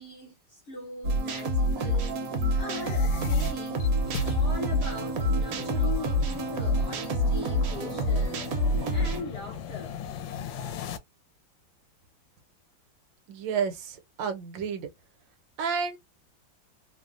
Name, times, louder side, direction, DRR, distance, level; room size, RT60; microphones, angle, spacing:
voice 1, 0.0-2.1 2.6-8.5 8.9-10.0, left 2 dB, 50° left, 0.7 m, -41 dB
sound 1, 1.0-9.2, equal, 65° right, 1.0 m, -27 dB
sound 2, 2.5-11.0, left 3 dB, 80° left, 1.2 m, -38 dB
voice 2, 13.3-14.9 15.6-16.0, right 6 dB, 80° right, 1.4 m, -30 dB
3.2 x 2.1 x 2.4 m
omnidirectional pair, 2.0 m